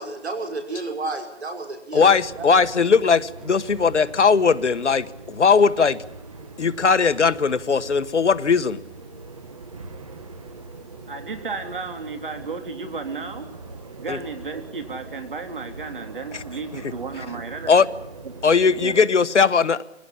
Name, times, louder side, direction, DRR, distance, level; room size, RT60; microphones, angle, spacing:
voice 1, 0.0-2.1 2.4-2.5, right 3 dB, 65° right, 5 dB, 5.6 m, -31 dB
voice 2, 1.9-6.0 6.6-8.8 14.1-14.2 16.3-16.4 17.7-17.9 18.4-19.8, left 5 dB, 80° left, 14 dB, 1.2 m, -19 dB
sound 1, 1.9-19.0, right 3 dB, 30° right, 1.3 m, -41 dB
voice 3, 11.1-13.5 14.0-17.7 18.8-19.1, right 4 dB, 45° right, 6 dB, 3.3 m, -33 dB
22.5 x 17.0 x 10.0 m, 0.86 s
hypercardioid pair, 170°, 35 cm